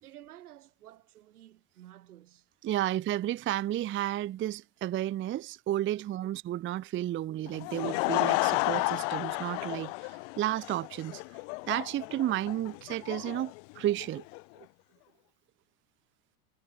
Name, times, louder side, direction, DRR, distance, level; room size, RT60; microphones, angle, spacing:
voice 1, 0.0-2.5 5.9-6.1, right 13 dB, 80° right, 5.0 m, -52 dB
voice 2, 2.6-11.2 11.7-14.2, right 13 dB, 25° right, 0.6 m, -32 dB
Laughter / Crowd, 7.5-14.4, left 38 dB, 55° left, 0.6 m, -32 dB
hypercardioid pair, 90°, 44 cm